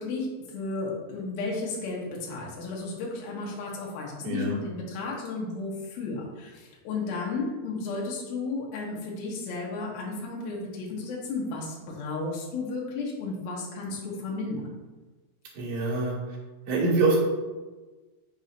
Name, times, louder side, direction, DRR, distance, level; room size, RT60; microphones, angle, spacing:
voice 1, 0.0-14.7, left 3 dB, 70° left, -3 dB, 2.7 m, -33 dB
voice 2, 4.2-4.5 15.5-16.2 16.7-17.2, right 3 dB, 55° right, -6 dB, 2.2 m, -24 dB
6.8 x 5.4 x 2.6 m, 1.3 s
omnidirectional pair, 4.8 m